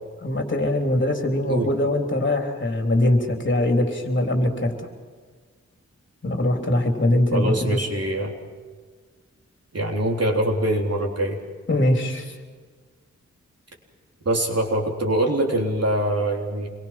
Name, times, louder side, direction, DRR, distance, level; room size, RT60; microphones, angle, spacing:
voice 1, 0.2-4.9 6.2-7.8 11.7-12.3, left 1 dB, 40° left, 3 dB, 3.7 m, -22 dB
voice 2, 7.3-8.3 9.7-11.4 14.3-16.7, right 1 dB, 55° right, 0 dB, 3.7 m, -23 dB
27.5 x 22.5 x 6.0 m, 1.5 s
wide cardioid pair, 100°, 29 cm